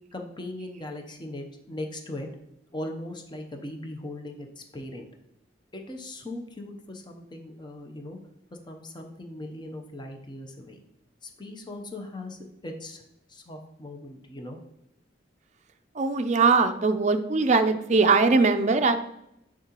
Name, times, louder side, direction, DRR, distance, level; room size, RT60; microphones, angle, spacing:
voice 1, 0.1-2.3 2.7-5.1 5.7-8.2 8.6-10.8 11.2-13.0 13.3-14.6, left 1 dB, 25° left, 3 dB, 0.7 m, -39 dB
voice 2, 16.0-18.9, right 4 dB, 40° right, 8 dB, 0.4 m, -21 dB
10.5 x 3.7 x 2.9 m, 0.81 s
head